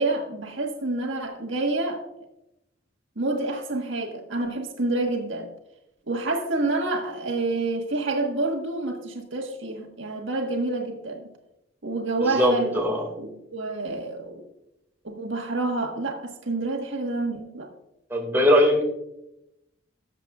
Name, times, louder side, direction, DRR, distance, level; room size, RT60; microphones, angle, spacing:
voice 1, 0.0-2.0 3.2-5.5 6.1-11.2 11.8-12.8 13.2-14.4 15.0-17.7, right 2 dB, 75° right, 2 dB, 1.5 m, -28 dB
voice 2, 12.4-13.1 18.1-18.8, equal, 10° right, 1 dB, 2.0 m, -20 dB
18.0 x 7.6 x 2.4 m, 0.85 s
head